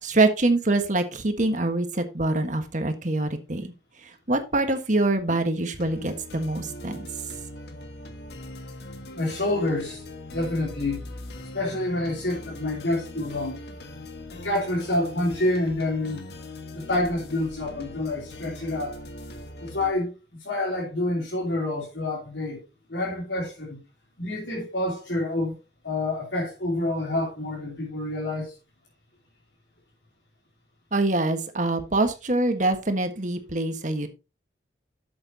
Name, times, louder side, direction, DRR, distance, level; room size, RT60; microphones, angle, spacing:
voice 1, 0.0-3.7 4.0-7.1 30.9-34.1, right 2 dB, 45° right, 1.4 m, -25 dB
sound 1, 5.8-19.9, left 1 dB, 65° left, 1.7 m, -41 dB
voice 2, 9.1-10.0 10.3-11.1 11.5-13.6 14.3-16.3 16.7-19.0 19.6-22.6 22.9-23.8 24.2-25.6 25.8-28.5, left 1 dB, 90° left, 3.3 m, -28 dB
12.0 x 7.9 x 2.8 m
head